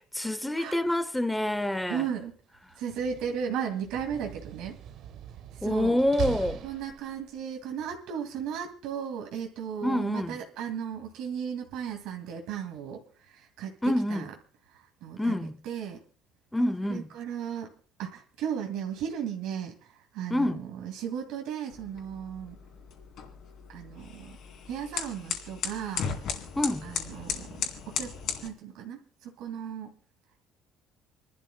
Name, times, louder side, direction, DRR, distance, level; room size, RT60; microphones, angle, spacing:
voice 1, 0.1-2.1 5.6-6.7 9.8-10.4 13.8-14.3 15.2-15.6 16.5-17.1 20.3-20.6 26.6-26.9, left 1 dB, 5° left, 0.5 m, -27 dB
voice 2, 1.9-2.3 2.8-4.8 5.6-6.0 6.6-13.0 13.3-13.7 14.1-14.3 15.0-15.4 15.6-16.0 16.9-17.7 18.0-19.7 20.1-22.6 23.7-24.4 24.7-26.1 26.8-28.1 28.4-29.9, right 8 dB, 70° right, 2.2 m, -35 dB
Slam, 2.7-7.4, right 10 dB, 55° right, 0.9 m, -40 dB
sound 1, 21.7-28.5, left 7 dB, 50° left, 2.5 m, -36 dB
28.0 x 12.0 x 2.2 m
cardioid pair, 165°, 0 cm